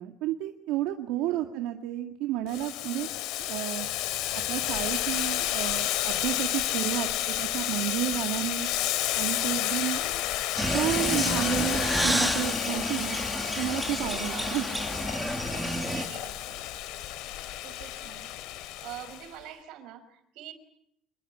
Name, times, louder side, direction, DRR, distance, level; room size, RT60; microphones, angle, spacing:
voice 1, 0.0-4.1 4.5-8.7 9.2-10.2 10.6-13.2 13.6-14.7, right 13 dB, 80° right, 5 dB, 2.1 m, -32 dB
Boiling, 2.5-19.3, left 14 dB, 70° left, 2.6 m, -31 dB
sound 1, 10.6-16.1, right 1 dB, ahead, 1.6 m, -30 dB
voice 2, 14.2-15.0 15.9-16.7 17.6-18.3 18.8-20.5, right 11 dB, 60° right, 10 dB, 5.4 m, -44 dB
28.0 x 21.5 x 8.5 m, 0.73 s
cardioid pair, 175°, 0 cm